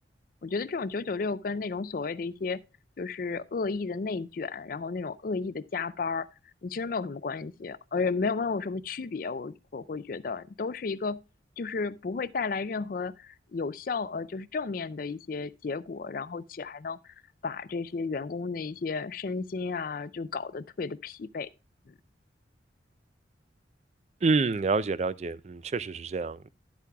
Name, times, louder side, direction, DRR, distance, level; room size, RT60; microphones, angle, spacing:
voice 1, 0.4-2.6 3.0-6.3 6.6-11.2 11.6-17.2 17.4-21.5 21.9-22.0, left 4 dB, 50° left, 0.4 m, -33 dB
voice 2, 24.2-26.5, right 4 dB, 35° right, 0.3 m, -28 dB
11.5 x 8.4 x 2.2 m
head